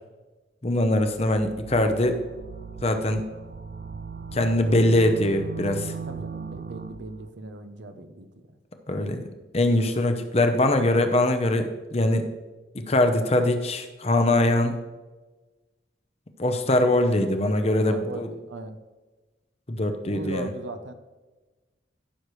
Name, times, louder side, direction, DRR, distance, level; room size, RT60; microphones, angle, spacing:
voice 1, 0.6-2.2 2.8-3.2 4.3-5.9 8.9-9.2 9.5-12.3 12.7-14.8 16.4-18.3 19.7-20.5, left 1 dB, 35° left, 7 dB, 0.8 m, -22 dB
sound 1, 1.0-7.3, right 5 dB, 50° right, 0.3 m, -37 dB
voice 2, 6.1-8.3 8.9-9.2 17.3-17.5 17.9-18.8 20.1-20.9, right 2 dB, 75° right, 9 dB, 0.7 m, -38 dB
14.5 x 6.5 x 3.2 m, 1.2 s
head